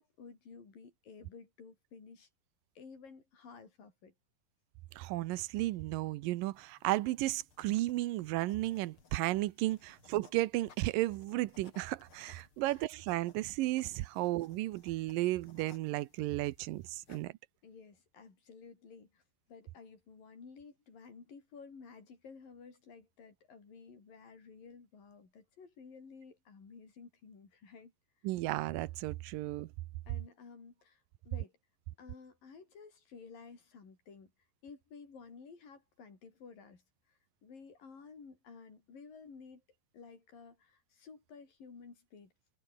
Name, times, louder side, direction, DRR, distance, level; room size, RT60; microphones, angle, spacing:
voice 1, 0.0-2.3 2.8-4.1 17.6-19.2 19.5-27.9 30.1-31.5 32.0-34.3 34.6-36.8 37.1-39.6 39.9-42.3, left 5 dB, 80° left, 7.2 m, -53 dB
voice 2, 5.0-17.3 28.2-29.7, right 17 dB, 85° right, 2.5 m, -34 dB
sound 1, 6.5-17.3, left 6 dB, 40° left, 3.1 m, -63 dB
omnidirectional pair, 3.9 m